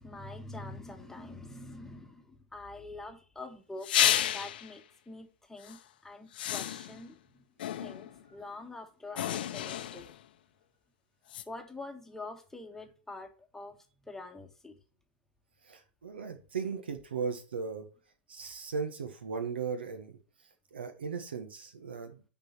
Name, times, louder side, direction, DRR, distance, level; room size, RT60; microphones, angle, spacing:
voice 1, 0.0-3.9 4.3-7.4 7.7-10.1 11.5-13.8 14.0-14.8, left 2 dB, 5° left, 1.4 m, -45 dB
sound 1, 3.8-4.7 5.6-5.8 6.3-7.1 7.6-8.2 9.2-10.2 11.3-11.4, left 11 dB, 60° left, 0.8 m, -31 dB
voice 2, 15.7-17.9 18.3-20.2 20.7-22.2, right 5 dB, 70° right, 1.5 m, -37 dB
10.5 x 4.1 x 4.5 m
figure-of-eight pair, 90°, 6 cm